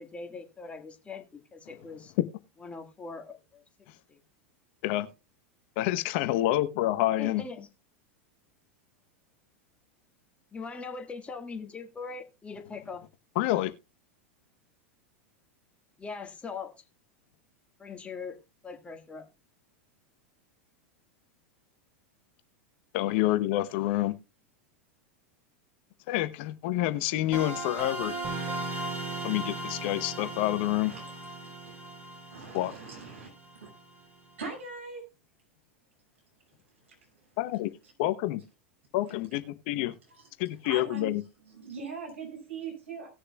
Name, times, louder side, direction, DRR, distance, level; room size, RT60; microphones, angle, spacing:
voice 1, 0.0-2.1 2.6-3.6 4.1-4.2 7.2-7.7 10.5-13.0 16.0-16.7 17.8-18.4 18.6-19.3, left 4 dB, 15° left, 1.6 m, -41 dB
voice 2, 5.8-7.4 13.4-13.7 22.9-24.1 26.1-28.2 29.2-30.9 32.5-32.7 37.4-37.7 38.0-38.4 38.9-39.9 40.4-41.2, left 15 dB, 60° left, 0.8 m, -28 dB
sound 1, 27.3-34.0, right 2 dB, 25° right, 3.9 m, -37 dB
voice 3, 32.3-33.3 33.6-33.7 34.4-35.0 40.1-40.3 40.6-41.1 41.5-43.1, right 4 dB, 75° right, 5.6 m, -40 dB
18.5 x 6.7 x 2.2 m
hypercardioid pair, 95°, 7 cm